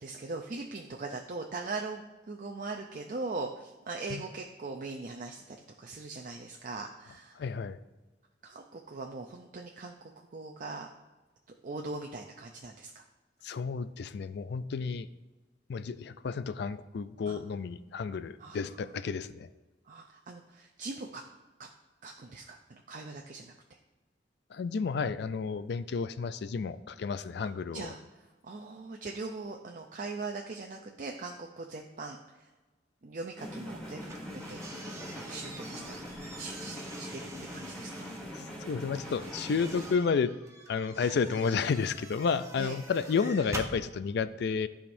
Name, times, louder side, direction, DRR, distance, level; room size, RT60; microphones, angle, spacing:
voice 1, 0.0-7.4 8.4-10.9 11.6-13.0 17.3-17.4 18.4-19.1 19.9-21.2 21.6-21.7 22.0-23.5 27.4-28.0 28.4-32.5 33.0-34.6 34.9-36.0 36.4-38.1 41.0-41.2 42.6-42.8, right 3 dB, 45° right, 2 dB, 0.5 m, -41 dB
voice 2, 7.4-7.8 13.4-15.1 15.7-19.5 24.5-27.9 38.7-40.3 40.7-44.7, left 5 dB, 65° left, 14 dB, 0.4 m, -31 dB
sound 1, 33.4-40.0, left 1 dB, 5° left, 1.9 m, -42 dB
sound 2, 34.0-38.2 38.9-43.8, right 2 dB, 15° right, 0.8 m, -46 dB
13.5 x 5.0 x 2.6 m, 1.2 s
head